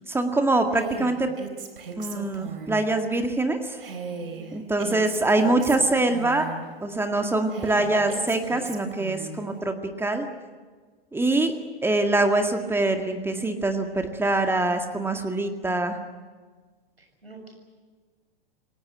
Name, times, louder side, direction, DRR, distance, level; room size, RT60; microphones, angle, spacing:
voice 1, 0.1-1.3 2.0-3.8 4.5-6.5 6.8-10.3 11.1-11.5 11.8-16.0, right 2 dB, 10° right, 5 dB, 1.9 m, -24 dB
Female speech woman speaking, 0.7-2.9 3.8-6.7 7.5-9.4, right 4 dB, 70° right, 3.6 m, -37 dB
voice 2, 4.1-4.6 17.0-17.5, right 3 dB, 85° right, 2 dB, 6.9 m, -47 dB
28.0 x 18.5 x 9.1 m, 1.5 s
figure-of-eight pair, 100°, 29 cm